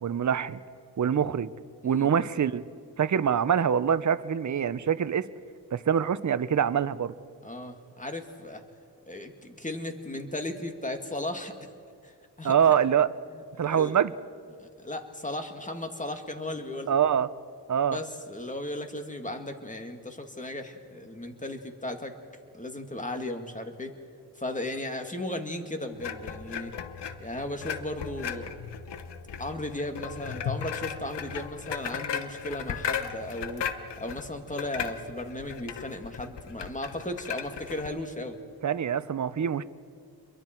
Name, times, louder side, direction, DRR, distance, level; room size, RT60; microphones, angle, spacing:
voice 1, 0.0-0.6 1.0-1.5 1.8-2.6 3.0-5.3 5.7-7.1 12.4-13.1 13.6-14.1 16.9-17.3 17.7-18.0 38.6-39.6, right 8 dB, 45° right, 14 dB, 0.7 m, -24 dB
voice 2, 7.4-8.6 9.1-11.5 12.0-12.6 13.3-14.0 14.6-16.9 17.9-22.1 22.5-23.9 24.4-26.7 27.2-28.5 29.4-33.7 34.0-38.4, left 1 dB, 20° left, 5 dB, 2.3 m, -36 dB
sound 1, 26.0-37.9, left 7 dB, 90° left, 1.1 m, -36 dB
29.0 x 22.5 x 4.5 m, 2.3 s
cardioid pair, 70°, 41 cm